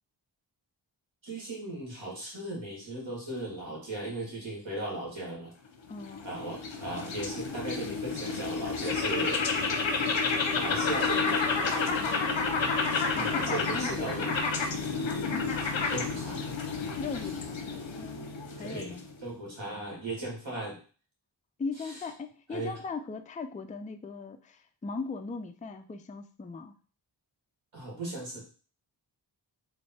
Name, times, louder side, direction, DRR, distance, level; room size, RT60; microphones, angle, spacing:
voice 1, 1.2-5.5 6.2-9.8 10.5-11.5 13.1-14.3 15.9-16.4 18.6-18.9 19.2-20.8 21.8-22.0 22.5-22.7 27.7-28.4, right 2 dB, 90° right, -3 dB, 2.0 m, -37 dB
sound 1, 5.8-19.2, left 4 dB, 75° left, 0.7 m, -30 dB
voice 2, 5.9-6.2 12.0-12.3 13.1-14.5 15.3-15.5 16.8-17.7 18.0-19.0 21.6-26.7, left 4 dB, 20° left, 7 dB, 0.3 m, -39 dB
3.3 x 3.1 x 4.2 m, 0.39 s
wide cardioid pair, 80°, 45 cm